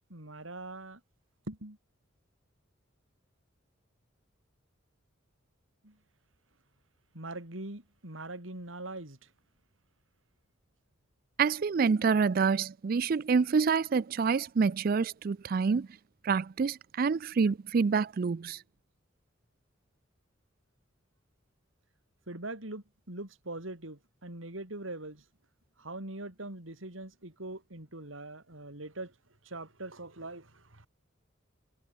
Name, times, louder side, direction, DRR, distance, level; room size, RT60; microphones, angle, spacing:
voice 1, 0.1-1.0 1.5-1.8 5.8-6.0 7.1-9.3 22.3-25.2 25.8-29.1 29.4-30.9, right 2 dB, 80° right, 4.1 m, -42 dB
voice 2, 11.4-15.9 16.2-18.6, right 5 dB, 45° right, 0.4 m, -27 dB
head